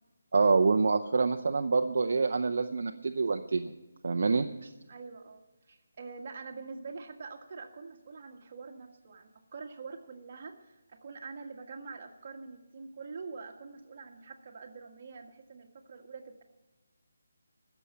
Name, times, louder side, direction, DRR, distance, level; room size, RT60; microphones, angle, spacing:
voice 1, 0.3-3.7 4.0-4.7, right 4 dB, 55° right, 5 dB, 0.6 m, -26 dB
voice 2, 4.9-5.4 6.0-16.4, right 4 dB, 35° right, 3 dB, 1.5 m, -45 dB
15.5 x 7.1 x 8.6 m, 1.1 s
hypercardioid pair, 170°, 0 cm